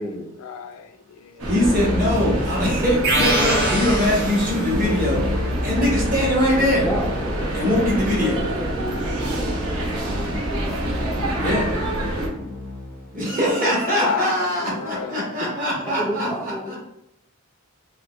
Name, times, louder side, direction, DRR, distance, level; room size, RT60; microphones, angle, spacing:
voice 1, 0.4-1.5 13.9-15.8, left 6 dB, 80° left, 8 dB, 0.3 m, -32 dB
voice 2, 1.4-5.2 5.6-6.9 7.5-8.4 11.4-11.6 13.1-16.3 16.7-16.8, left 1 dB, 40° right, -4 dB, 1.0 m, -22 dB
sound 1, 1.4-12.3, right 1 dB, 90° right, 0.8 m, -27 dB
Keyboard (musical), 1.6-3.3 4.7-13.1, left 2 dB, 55° right, 0.7 m, -31 dB
sound 2, 3.0-4.9, right 1 dB, 70° right, 1.2 m, -23 dB
voice 3, 6.8-7.5 8.0-11.3 11.6-12.5 13.1-13.7 14.2-14.3 15.7-16.7, equal, 5° left, -4 dB, 0.4 m, -33 dB
4.2 x 2.1 x 2.2 m, 0.80 s
head